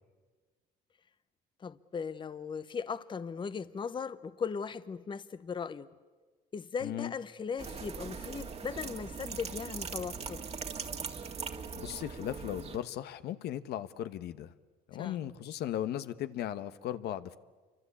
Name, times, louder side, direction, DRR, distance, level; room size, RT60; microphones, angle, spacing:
voice 1, 1.6-5.9 6.5-10.4 15.0-15.3, left 6 dB, 30° left, 0.8 m, -38 dB
sound 1, 7.6-12.8, right 5 dB, 40° right, 2.0 m, -40 dB
voice 2, 11.8-14.5 14.9-17.4, left 11 dB, 75° left, 1.1 m, -37 dB
28.5 x 24.5 x 8.4 m
cardioid pair, 110°, 17 cm